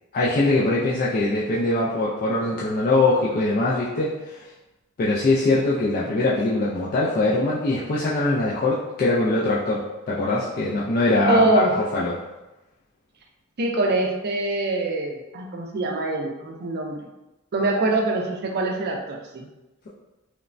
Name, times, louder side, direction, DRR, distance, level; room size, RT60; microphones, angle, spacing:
voice 1, 0.1-4.4 5.0-12.1, left 2 dB, 40° left, -7 dB, 0.3 m, -22 dB
voice 2, 11.3-11.7 13.6-17.1 17.5-19.4, right 2 dB, 50° right, 1 dB, 0.4 m, -24 dB
3.1 x 2.1 x 2.5 m, 1.0 s
head